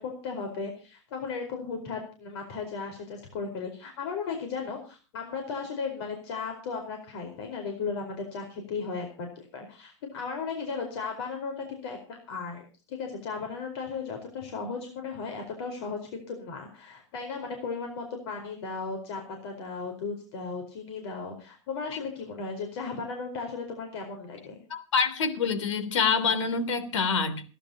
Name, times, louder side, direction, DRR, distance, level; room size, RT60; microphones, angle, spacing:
voice 1, 0.0-24.6, left 5 dB, 60° left, 3 dB, 4.6 m, -36 dB
voice 2, 24.7-27.5, left 5 dB, 80° left, 10 dB, 3.2 m, -26 dB
29.5 x 11.0 x 2.9 m, 0.35 s
supercardioid pair, 155°, 15 cm